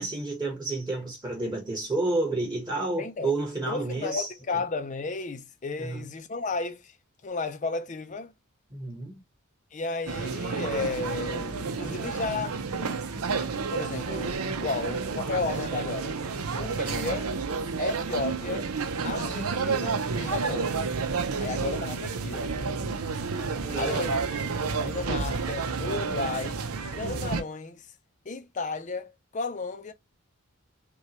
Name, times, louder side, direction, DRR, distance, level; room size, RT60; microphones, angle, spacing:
voice 1, 0.0-4.3 5.8-6.0 8.7-9.2 23.6-24.1, right 2 dB, 20° right, 1.3 m, -30 dB
voice 2, 3.0-3.3 3.6-6.9 7.2-8.3 9.7-12.6 13.3-13.4 13.7-16.2 16.6-17.3 17.8-18.7 19.0-20.8 21.4-22.5 23.8-26.6 26.9-27.9 28.3-29.9, left 3 dB, 35° left, 0.5 m, -33 dB
sound 1, 10.1-27.4, right 4 dB, 90° right, 0.7 m, -30 dB
5.6 x 2.3 x 3.0 m
head